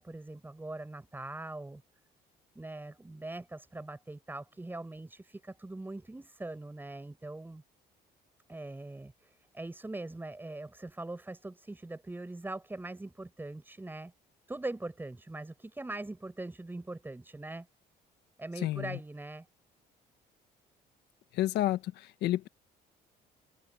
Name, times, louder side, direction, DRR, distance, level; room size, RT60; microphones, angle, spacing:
voice 1, 0.0-1.8 2.5-7.6 8.5-14.1 14.5-17.7 18.4-19.5, right 2 dB, 10° right, 6.8 m, -42 dB
voice 2, 18.6-19.0 21.3-22.5, left 14 dB, 80° left, 1.4 m, -30 dB
cardioid pair, 110°, 17 cm